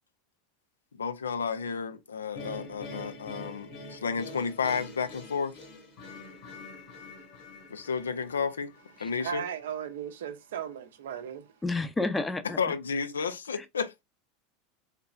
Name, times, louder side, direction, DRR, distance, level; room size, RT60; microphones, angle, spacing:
voice 1, 0.9-5.6 7.7-8.7 9.0-9.4 12.6-14.0, left 5 dB, 85° left, 0.4 m, -32 dB
sound 1, 2.3-9.4, left 2 dB, 55° left, 1.4 m, -45 dB
voice 2, 9.2-11.5, right 9 dB, 70° right, 0.6 m, -36 dB
voice 3, 11.6-12.6 13.5-13.6, left 2 dB, 10° left, 0.6 m, -30 dB
3.4 x 2.8 x 2.3 m
hypercardioid pair, 85°, 0 cm